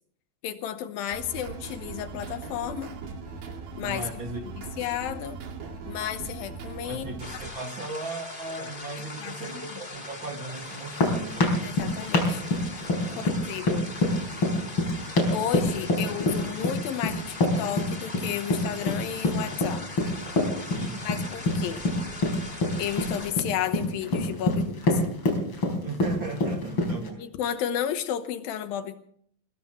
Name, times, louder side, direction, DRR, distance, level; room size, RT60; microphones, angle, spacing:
voice 1, 0.4-2.9 3.8-4.1 4.4-5.4 5.8-7.1 9.0-9.8 11.6-12.7 13.2-13.9 15.3-19.8 21.0-21.8 22.8-25.0 27.2-29.0, left 10 dB, 80° left, 10 dB, 2.8 m, -32 dB
sound 1, 1.1-7.5, right 4 dB, 80° right, 4.0 m, -39 dB
voice 2, 3.8-4.4 6.9-11.5 13.0-13.3 20.7-21.0 25.8-27.2, right 2 dB, 40° right, 3 dB, 2.4 m, -37 dB
sound 2, 7.2-23.3, left 2 dB, 20° left, 1.7 m, -41 dB
sound 3, 10.7-27.1, left 2 dB, 35° left, 4.6 m, -26 dB
21.5 x 20.0 x 3.1 m, 0.63 s
omnidirectional pair, 4.1 m